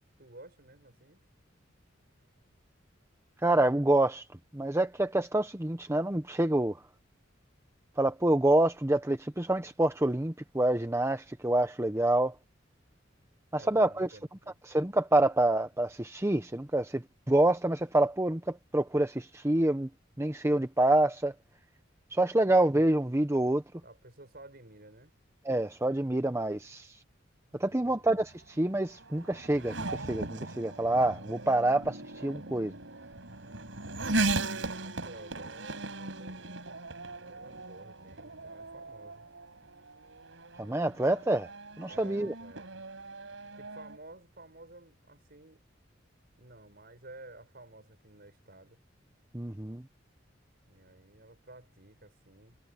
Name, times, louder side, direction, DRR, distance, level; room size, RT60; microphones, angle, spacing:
voice 1, 0.2-1.2 13.6-14.5 23.8-25.1 27.7-28.1 34.1-36.6 37.1-39.3 41.8-42.8 43.6-45.6 46.4-48.8 50.7-52.6, right 2 dB, 55° right, 7.3 m, -52 dB
voice 2, 3.4-4.2 4.5-6.8 8.0-12.3 13.5-14.1 14.7-19.9 20.2-21.3 22.1-23.6 25.5-27.0 27.6-32.7 40.6-41.5 41.8-42.3 49.3-49.8, right 1 dB, 15° right, 0.8 m, -27 dB
Race car auto racing / Accelerating revving vroom, 27.7-44.0, right 2 dB, 85° right, 4.9 m, -38 dB
head